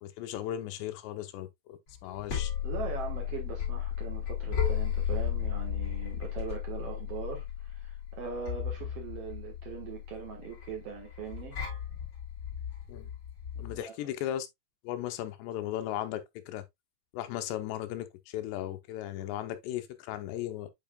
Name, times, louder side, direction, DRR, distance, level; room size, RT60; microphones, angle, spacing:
voice 1, 0.0-2.5 12.9-13.1 13.6-14.5 14.8-16.2 16.5-16.6 17.1-20.7, left 12 dB, 80° left, 2.8 m, -36 dB
sound 1, 1.9-13.8, left 9 dB, 30° left, 4.1 m, -34 dB
voice 2, 2.6-11.6 13.7-14.0, right 6 dB, 90° right, 1.3 m, -41 dB
9.3 x 4.8 x 2.3 m
omnidirectional pair, 5.2 m